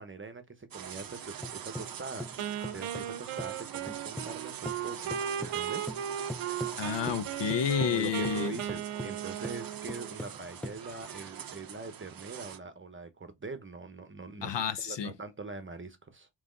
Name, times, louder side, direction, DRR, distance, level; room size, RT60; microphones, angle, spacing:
voice 1, 0.0-2.3 2.7-5.9 7.8-16.3, right 3 dB, 25° right, 0.9 m, -43 dB
Small Busy Swarm of Flies, 0.7-12.6, right 9 dB, 45° right, 0.6 m, -44 dB
sound 1, 1.0-4.4 4.6-11.3, left 1 dB, 5° left, 0.3 m, -42 dB
Wind instrument woodwind instrument, 2.4-10.3, right 10 dB, 80° right, 0.7 m, -37 dB
voice 2, 6.8-8.6 14.4-15.1, left 7 dB, 60° left, 0.7 m, -30 dB
3.4 x 3.1 x 3.8 m
cardioid pair, 65°, 49 cm